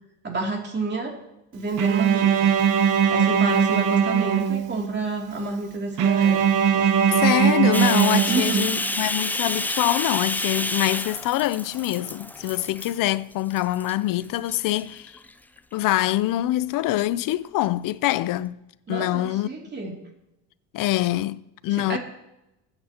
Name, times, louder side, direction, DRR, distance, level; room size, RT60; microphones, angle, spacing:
voice 1, 0.2-1.2 1.5-2.5 3.1-6.4 6.7-7.4 8.3-8.7 18.9-20.0 21.9-22.0, right 3 dB, 30° right, 2.8 m, -29 dB
Bowed string instrument, 1.8-5.0 6.0-8.9, right 8 dB, 55° right, 1.2 m, -20 dB
voice 2, 7.1-15.2 15.7-18.6 18.9-19.5 20.7-22.0, left 15 dB, 60° left, 0.6 m, -24 dB
Bathtub (filling or washing), 7.7-13.1 13.5-13.9 14.5-15.3, left 2 dB, 5° left, 0.4 m, -29 dB
22.0 x 8.8 x 2.9 m
cardioid pair, 115°, 38 cm